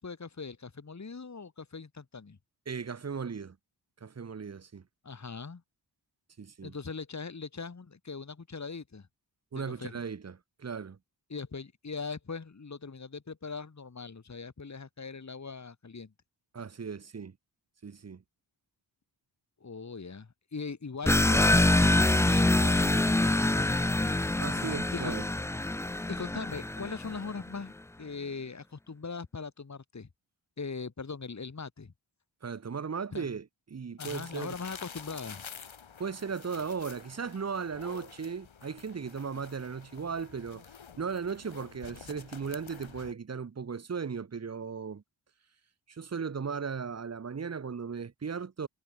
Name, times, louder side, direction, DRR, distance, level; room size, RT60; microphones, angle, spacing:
voice 1, 0.0-2.4 5.0-5.6 6.6-9.1 9.5-9.9 11.3-16.1 19.6-23.7 24.9-25.2 26.1-30.1 30.6-31.9 33.1-33.3 34.0-35.4, left 4 dB, 35° left, 1.7 m, -40 dB
voice 2, 2.7-3.6 4.0-4.8 6.4-6.7 9.5-11.0 16.5-17.3 17.8-18.2 24.4-25.3 32.4-34.5 36.0-40.7 41.0-45.0 45.9-48.7, right 6 dB, 35° right, 0.8 m, -37 dB
sound 1, 21.1-27.3, left 2 dB, 5° left, 0.3 m, -25 dB
sound 2, 34.0-43.1, left 7 dB, 85° left, 3.8 m, -48 dB
cardioid pair, 50°, 46 cm